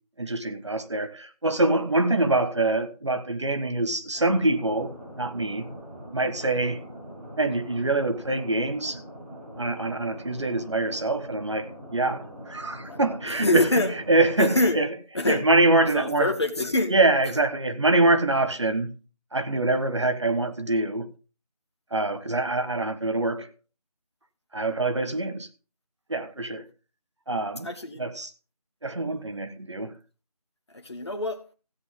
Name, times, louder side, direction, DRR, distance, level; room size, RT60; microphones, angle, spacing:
voice 1, 0.2-5.7 6.1-6.8 7.4-9.0 9.6-14.9 15.3-16.3 16.9-19.0 19.3-21.1 21.9-23.5 24.5-25.5 26.1-26.6 27.3-27.7 28.0-28.3 28.8-29.9, right 2 dB, 45° right, 1.5 m, -25 dB
sound 1, 4.1-14.7, equal, 20° right, 5.2 m, -43 dB
voice 2, 12.8-13.9 14.4-14.8 15.1-15.4 15.8-16.9 27.6-28.0 30.7-31.4, left 2 dB, 40° left, 1.9 m, -25 dB
16.5 x 8.1 x 3.7 m
figure-of-eight pair, 175°, 20 cm